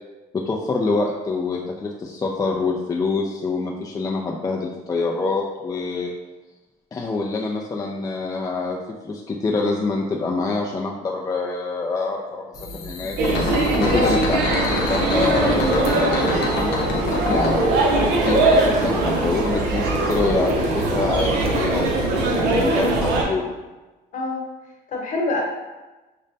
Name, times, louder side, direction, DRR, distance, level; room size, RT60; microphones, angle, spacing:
voice 1, 0.3-6.1 6.9-8.8 9.0-12.4 12.7-13.2 13.8-14.4 14.9-16.7 17.3-17.6 18.2-23.5, left 3 dB, 20° left, -2 dB, 0.4 m, -25 dB
sound 1, 12.5-19.5, left 3 dB, 80° left, 0.7 m, -27 dB
sound 2, 13.2-23.2, right 2 dB, 80° right, 0.7 m, -21 dB
voice 2, 17.2-17.7 24.1-24.4 24.9-25.4, left 2 dB, 50° left, -1 dB, 1.1 m, -25 dB
6.3 x 2.1 x 2.6 m, 1.1 s
cardioid pair, 110°, 17 cm